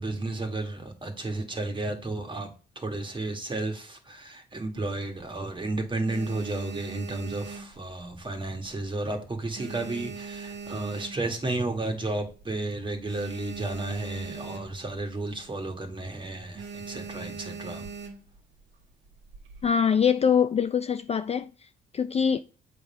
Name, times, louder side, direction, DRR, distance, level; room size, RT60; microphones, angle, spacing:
voice 1, 0.0-2.5 2.8-17.9, right 2 dB, 25° right, 1.9 m, -32 dB
sound 1, 4.8-5.5 5.9-8.4 8.7-9.0 9.3-11.6 12.0-12.1 12.3-12.4 12.8-15.0 15.3-15.5 15.8-16.1 16.6-18.4 19.1-19.7, right 5 dB, 65° right, 1.6 m, -40 dB
voice 2, 19.6-21.5 21.9-22.4, left 7 dB, 30° left, 0.4 m, -23 dB
7.7 x 3.6 x 5.8 m
cardioid pair, 90°, 20 cm